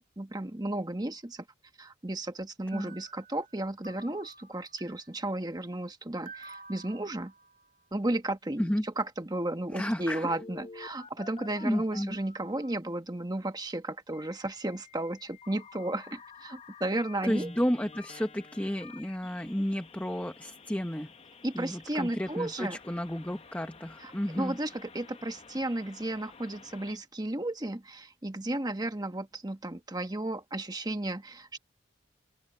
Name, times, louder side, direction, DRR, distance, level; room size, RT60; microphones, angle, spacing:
voice 1, 0.2-1.4 1.8-7.3 7.9-17.5 21.4-22.8 24.0-31.6, right 1 dB, 20° right, 1.2 m, -34 dB
sound 1, 2.7-3.6 3.8-5.2 6.3-7.8, right 3 dB, 45° right, 3.0 m, -51 dB
voice 2, 9.7-10.3 11.6-12.2 17.2-21.1 21.5-24.6, equal, 10° left, 1.0 m, -32 dB
Telephone, 10.2-12.7 14.1-27.0, left 4 dB, 30° left, 0.8 m, -51 dB
open air
head